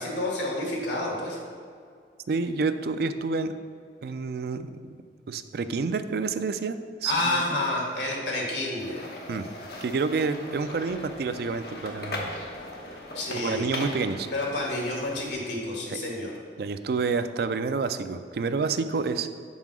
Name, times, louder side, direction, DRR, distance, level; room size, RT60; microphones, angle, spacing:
voice 1, 0.0-1.4 7.0-9.0 13.1-13.7 14.3-16.3, left 2 dB, 80° left, -2 dB, 1.7 m, -29 dB
voice 2, 2.3-3.5 4.0-4.7 5.3-6.8 7.0-7.1 9.3-9.5 9.8-12.3 13.3-14.3 16.6-19.3, right 4 dB, 60° right, 10 dB, 0.3 m, -28 dB
sound 1, 8.8-15.3, left 2 dB, 60° left, 1.0 m, -39 dB
5.5 x 4.9 x 6.1 m, 2.2 s
head